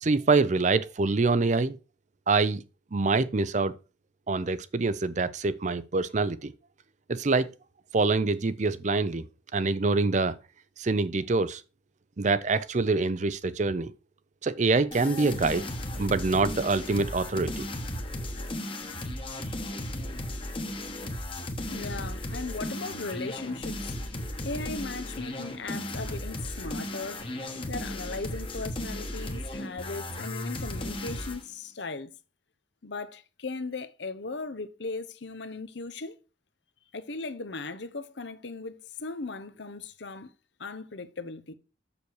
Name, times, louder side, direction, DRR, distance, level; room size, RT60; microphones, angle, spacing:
voice 1, 0.0-1.8 2.3-2.6 2.9-3.7 4.3-6.5 7.1-7.5 7.9-9.2 9.5-10.4 10.8-11.6 12.2-13.9 14.4-15.6 16.0-17.6, right 3 dB, 40° right, 0.5 m, -25 dB
sound 1, 14.9-31.4, left 1 dB, 30° left, 1.2 m, -35 dB
voice 2, 21.7-24.0 24.4-27.3 27.7-32.1 32.8-36.2 36.9-40.3 40.6-41.5, left 3 dB, 70° left, 0.9 m, -37 dB
6.9 x 6.9 x 4.7 m
head